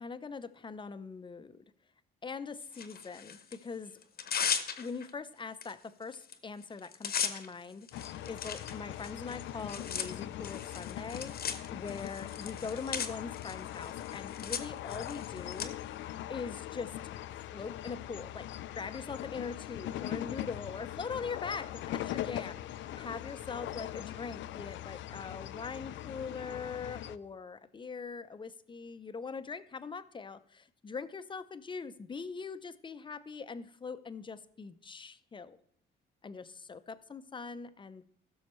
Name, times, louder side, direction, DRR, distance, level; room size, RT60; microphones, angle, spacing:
voice 1, 0.0-1.6 2.2-4.0 4.8-15.7 16.3-16.9 17.3-35.6 36.2-38.1, left 5 dB, 25° left, 12 dB, 0.6 m, -42 dB
Tearing, 2.7-3.6 4.0-5.1 5.6-5.7 6.0-6.3 6.6-15.7, left 7 dB, 50° left, 0.9 m, -38 dB
sound 1, 7.9-27.2, left 13 dB, 75° left, 0.4 m, -41 dB
15.0 x 6.3 x 3.1 m, 0.64 s
cardioid pair, 90°, 20 cm